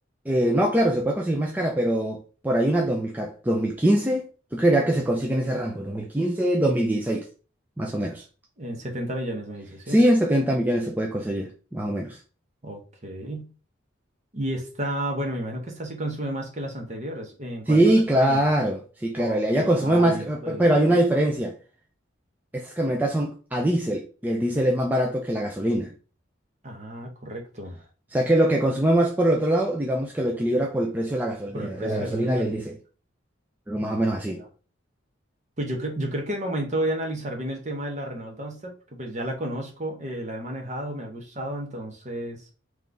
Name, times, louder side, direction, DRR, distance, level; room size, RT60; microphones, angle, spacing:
voice 1, 0.3-7.3 7.8-8.2 9.9-12.2 17.7-21.6 22.5-25.9 28.1-32.8 33.7-34.4, right 1 dB, 10° right, 0.5 m, -23 dB
voice 2, 8.6-10.0 12.6-13.5 14.3-17.8 18.2-18.4 19.2-21.0 26.6-27.8 31.5-32.6 33.8-34.4 35.6-42.4, right 1 dB, 35° right, 1.0 m, -32 dB
3.9 x 3.1 x 3.4 m
head